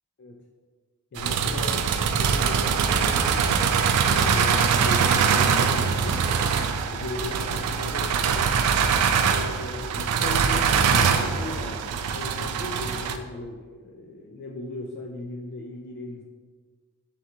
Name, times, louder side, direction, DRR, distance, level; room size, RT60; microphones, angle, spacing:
voice 1, 1.1-1.8 2.2-6.2 6.8-8.5 9.2-16.2, left 2 dB, 45° left, 0 dB, 0.3 m, -37 dB
sound 1, 1.2-13.2, right 6 dB, 85° right, 0.3 m, -23 dB
5.8 x 2.4 x 2.8 m, 1.5 s
head